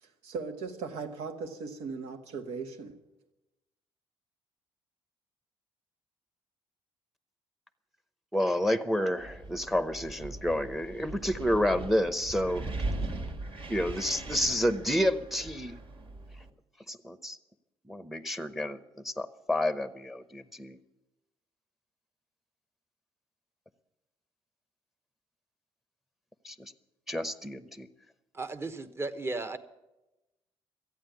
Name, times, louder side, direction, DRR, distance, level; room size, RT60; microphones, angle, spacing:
voice 1, 0.0-2.9, right 4 dB, 90° right, 5 dB, 1.6 m, -38 dB
voice 2, 8.3-12.7 13.7-15.8 16.9-17.4 17.9-20.8 26.4-26.7 27.1-27.9, left 1 dB, ahead, 13 dB, 0.8 m, -30 dB
Wind, 9.2-16.5, right 2 dB, 65° right, 2.0 m, -39 dB
voice 3, 28.3-29.6, right 3 dB, 25° right, 10 dB, 1.0 m, -35 dB
14.0 x 9.1 x 9.2 m, 0.99 s
cardioid pair, 100°, 10 cm